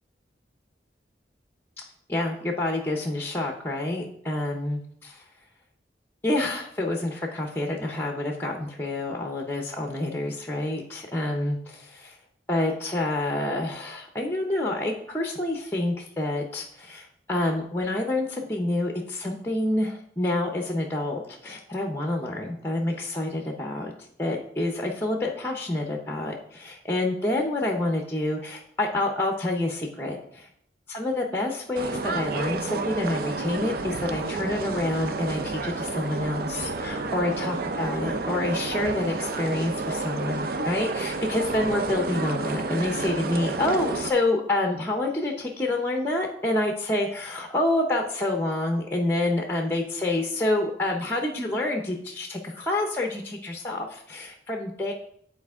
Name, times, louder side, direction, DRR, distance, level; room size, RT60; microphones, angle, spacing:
voice 1, 1.8-5.2 6.2-12.2 12.5-30.4 30.9-54.9, left 1 dB, 10° left, 2 dB, 0.7 m, -28 dB
sound 1, 31.7-44.1, right 3 dB, 55° right, 0.5 m, -30 dB
9.0 x 4.3 x 3.5 m, 0.65 s
head